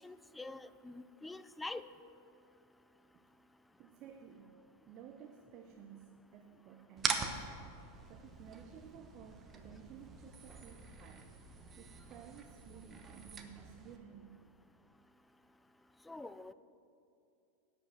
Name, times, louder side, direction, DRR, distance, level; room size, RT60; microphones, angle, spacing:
voice 1, 0.0-1.8 16.1-16.5, left 2 dB, 10° left, 14 dB, 0.4 m, -45 dB
voice 2, 3.8-7.5 8.1-11.3 11.8-14.4, right 8 dB, 45° right, 5 dB, 0.6 m, -54 dB
sound 1, 7.0-14.0, right 5 dB, 25° right, 0.9 m, -43 dB
11.0 x 5.2 x 8.0 m, 2.6 s
hypercardioid pair, 115°, 0 cm